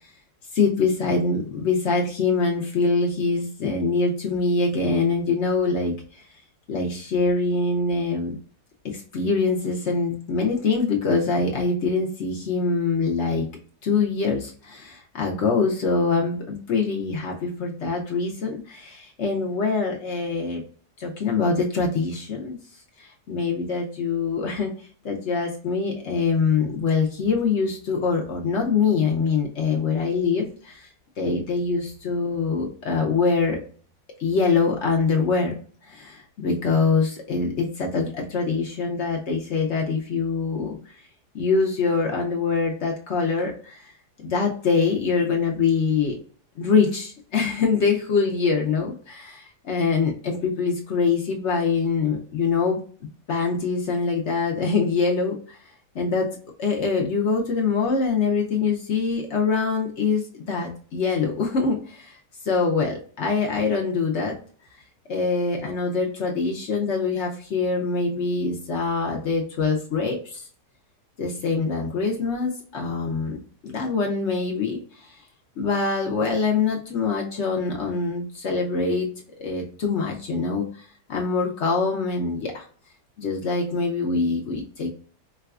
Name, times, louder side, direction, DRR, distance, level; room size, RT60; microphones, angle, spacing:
voice 1, 0.5-5.9 6.7-8.4 8.8-13.4 13.8-20.6 21.0-22.6 23.0-24.7 25.0-30.9 31.2-33.6 34.2-35.5 35.9-40.8 41.3-43.9 44.2-46.1 46.6-52.8 53.3-55.6 55.9-56.3 56.6-62.1 62.4-64.4 65.1-70.4 71.2-73.4 73.6-74.8 75.6-79.1 79.4-82.6 83.2-84.9, left 4 dB, 60° left, 0 dB, 0.7 m, -24 dB
4.7 x 2.2 x 2.3 m, 0.43 s
omnidirectional pair, 1.8 m